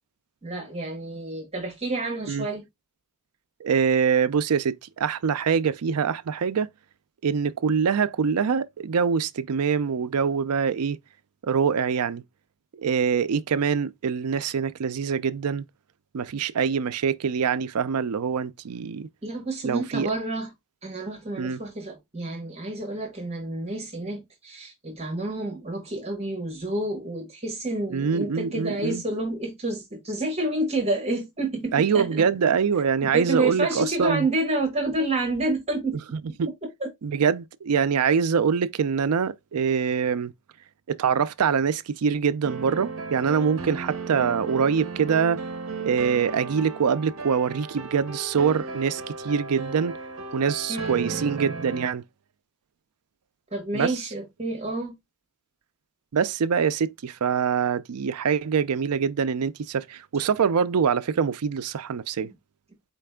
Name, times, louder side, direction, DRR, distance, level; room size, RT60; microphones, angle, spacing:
voice 1, 0.4-2.6 19.2-20.5 20.8-32.3 33.0-36.0 36.8-36.9 50.7-51.2 53.5-54.9, right 2 dB, 30° right, 1.6 m, -29 dB
voice 2, 3.6-6.7 7.2-11.0 11.4-12.2 12.7-15.6 16.1-19.1 19.6-20.1 21.4-21.6 27.9-29.0 31.7-34.3 36.4-36.5 37.0-40.3 40.9-45.4 45.8-50.0 50.3-52.0 53.7-53.9 56.1-62.3, right 6 dB, 85° right, 0.5 m, -24 dB
sound 1, 42.4-51.9, right 4 dB, 65° right, 0.8 m, -35 dB
4.6 x 3.3 x 3.5 m
head